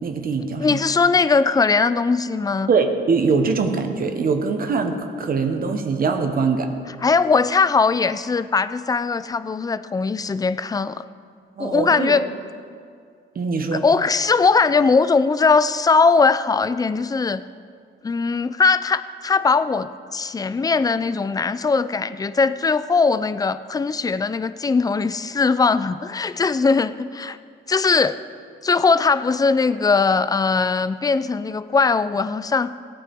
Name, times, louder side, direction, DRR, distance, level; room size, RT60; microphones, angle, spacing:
voice 1, 0.0-0.8 2.7-6.7 11.6-12.2 13.3-13.8, right 4 dB, 45° right, 6 dB, 1.1 m, -22 dB
voice 2, 0.6-2.7 7.0-11.0 11.6-12.2 13.7-17.4 18.0-27.4 27.7-28.2 28.6-32.7, left 4 dB, 20° left, 14 dB, 0.4 m, -20 dB
17.0 x 8.9 x 3.6 m, 2.2 s
cardioid pair, 90°, 20 cm